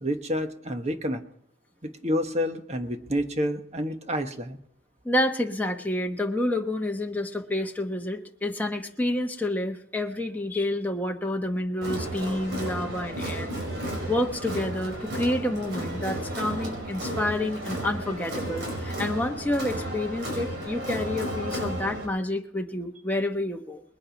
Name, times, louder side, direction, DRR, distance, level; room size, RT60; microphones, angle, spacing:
voice 1, 0.0-1.2 1.8-4.6, equal, 35° right, 7 dB, 1.2 m, -29 dB
voice 2, 5.0-13.5 14.1-23.8, left 1 dB, 10° left, 2 dB, 1.1 m, -29 dB
Crowd, 11.8-22.0, right 1 dB, 55° right, 5.1 m, -33 dB
21.0 x 8.7 x 5.2 m, 0.73 s
head